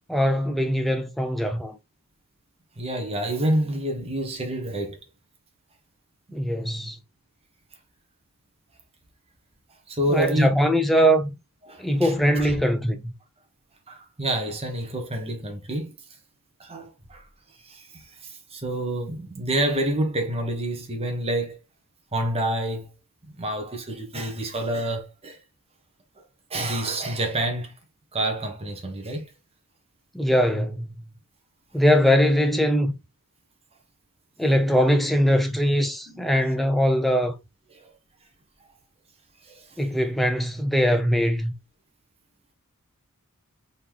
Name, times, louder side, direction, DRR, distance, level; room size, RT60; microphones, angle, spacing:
voice 1, 0.1-1.8 6.3-7.0 10.1-11.3 11.8-13.1 30.1-30.9 31.7-33.0 34.4-37.3 39.8-41.5, equal, ahead, 0.6 m, -21 dB
voice 2, 2.8-5.0 9.9-10.5 11.6-12.6 13.9-15.9 16.6-17.3 17.6-21.6 22.1-22.9 23.3-25.4 26.2-26.3 26.5-27.7 28.1-29.2 36.1-36.3 37.7-37.9 38.6-38.7 39.4-39.9, right 1 dB, 25° right, 1.2 m, -28 dB
4.2 x 3.0 x 3.5 m
head